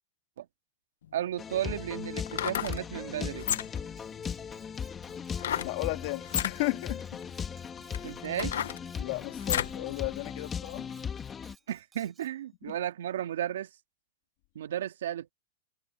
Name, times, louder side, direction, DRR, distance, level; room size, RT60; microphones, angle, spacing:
sound 1, 1.0-1.1 2.2-2.8 3.4-3.9 5.4-5.8 6.2-6.6 7.3-7.4 7.9-9.8 10.2-10.3, left 10 dB, 90° left, 1.1 m, -32 dB
voice 1, 1.1-3.5 8.0-8.6 11.7-13.7 14.5-15.3, right 11 dB, 85° right, 2.2 m, -34 dB
sound 2, 1.4-11.5, left 7 dB, 15° left, 2.0 m, -38 dB
Cutlery silverware, 4.0-12.3, right 6 dB, 15° right, 4.1 m, -61 dB
voice 2, 5.6-7.2 9.0-10.9 12.7-12.8, left 25 dB, 50° left, 1.9 m, -34 dB
supercardioid pair, 150°, 0 cm